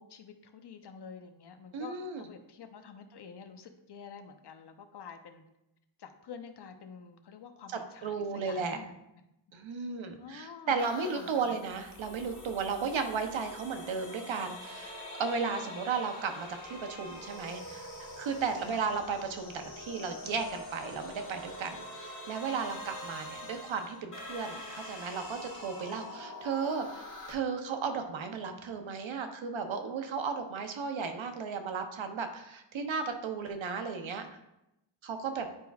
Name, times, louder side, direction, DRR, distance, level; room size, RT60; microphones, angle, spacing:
voice 1, 0.0-5.4 6.0-8.9 10.2-11.6 18.6-18.9 25.9-26.0, left 6 dB, 60° left, 7 dB, 0.8 m, -48 dB
voice 2, 1.7-2.2 8.0-8.8 9.5-17.9 18.2-34.3 35.0-35.5, right 5 dB, 75° right, 6 dB, 0.9 m, -35 dB
sound 1, 10.8-27.3, left 1 dB, 40° left, 1.6 m, -45 dB
9.6 x 4.6 x 2.3 m, 0.88 s
cardioid pair, 70°, 46 cm